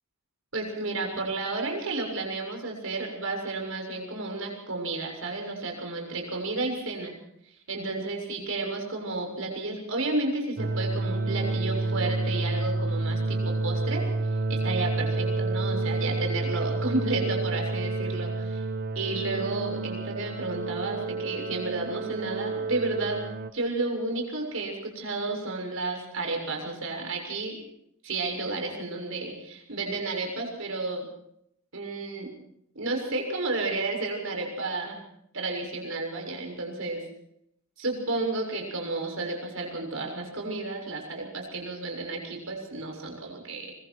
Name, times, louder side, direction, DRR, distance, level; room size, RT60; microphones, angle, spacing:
voice 1, 0.5-7.1 7.7-18.6 19.0-23.2 23.5-27.6 28.0-31.0 31.7-32.3 32.8-35.0 35.3-37.0 37.8-43.7, right 2 dB, 70° right, 2 dB, 7.0 m, -32 dB
sound 1, 10.6-23.5, right 3 dB, 50° right, 1.2 m, -29 dB
25.0 x 23.0 x 4.7 m, 0.72 s
head